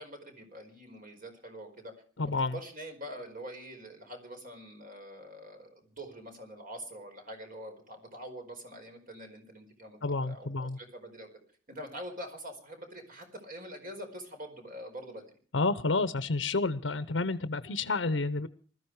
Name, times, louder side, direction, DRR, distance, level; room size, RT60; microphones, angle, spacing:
voice 1, 0.0-1.9 2.2-11.3 11.7-15.2, equal, 50° right, 4.7 m, -45 dB
voice 2, 2.2-2.6 10.0-10.8 15.5-18.5, left 3 dB, 80° left, 0.8 m, -30 dB
20.5 x 14.0 x 4.8 m
head